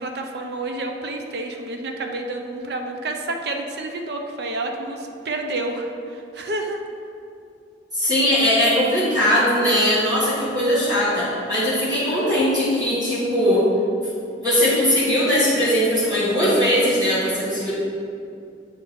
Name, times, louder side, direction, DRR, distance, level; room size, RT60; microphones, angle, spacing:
voice 1, 0.0-6.8, right 2 dB, 60° right, 3 dB, 0.6 m, -29 dB
voice 2, 7.9-13.6 14.4-17.7, equal, 20° right, -10 dB, 1.5 m, -20 dB
8.6 x 3.6 x 4.3 m, 2.5 s
head